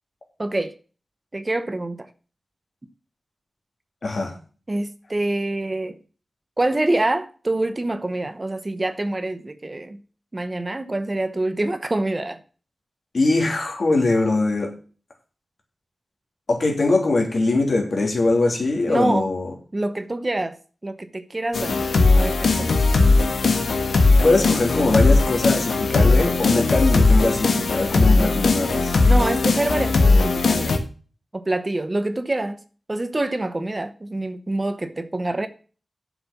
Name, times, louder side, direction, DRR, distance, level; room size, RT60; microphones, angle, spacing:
voice 1, 0.4-0.7 1.3-2.1 4.7-6.0 6.6-10.0 10.3-12.4 18.9-19.3 19.7-20.6 20.8-21.8 22.2-22.7 29.0-30.8 31.3-32.6 32.9-35.5, right 2 dB, 30° right, 0.9 m, -26 dB
voice 2, 4.0-4.3 13.1-14.7 16.5-19.5 24.2-28.9, left 2 dB, 60° left, 3.0 m, -21 dB
sound 1, 21.5-30.8, left 3 dB, 85° left, 1.4 m, -18 dB
7.6 x 6.1 x 7.1 m
wide cardioid pair, 90°, 0 cm